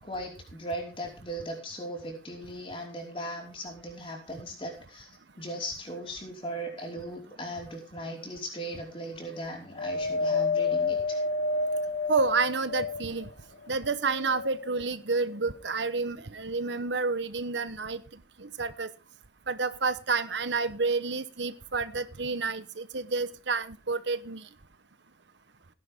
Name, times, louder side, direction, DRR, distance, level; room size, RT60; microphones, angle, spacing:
voice 1, 0.0-5.1 5.4-11.2, equal, 30° left, -1 dB, 5.0 m, -38 dB
Wind, 9.8-13.3 13.9-14.9 15.7-15.8, left 3 dB, 75° left, 1.1 m, -29 dB
voice 2, 12.1-13.3 13.7-18.0 18.4-18.9 19.5-24.4, right 4 dB, 90° right, 12 dB, 1.1 m, -29 dB
17.0 x 10.5 x 3.7 m, 0.32 s
head